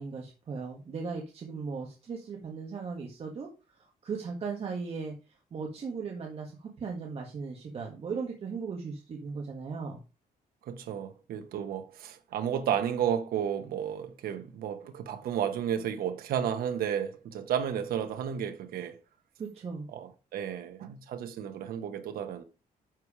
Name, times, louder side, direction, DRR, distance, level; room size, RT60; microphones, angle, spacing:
voice 1, 0.0-5.1 5.5-10.0 19.4-19.9, right 5 dB, 40° right, 1.7 m, -37 dB
voice 2, 10.7-19.0 19.9-22.4, right 9 dB, 85° right, 1.2 m, -32 dB
10.5 x 4.8 x 4.9 m
cardioid pair, 150°, 15 cm